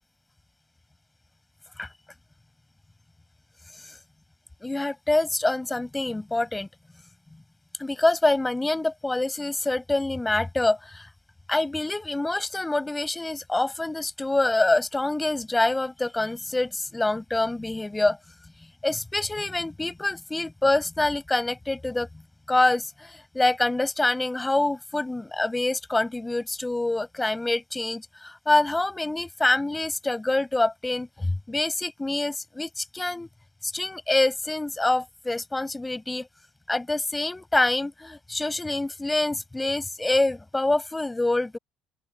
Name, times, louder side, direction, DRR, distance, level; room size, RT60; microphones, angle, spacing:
voice 1, 4.6-6.7 7.8-11.1 11.5-18.2 18.8-22.1 22.5-33.3 33.6-36.3 36.7-41.6, left 2 dB, 10° left, 7.9 m, -26 dB
open air
cardioid pair, 135°, 0 cm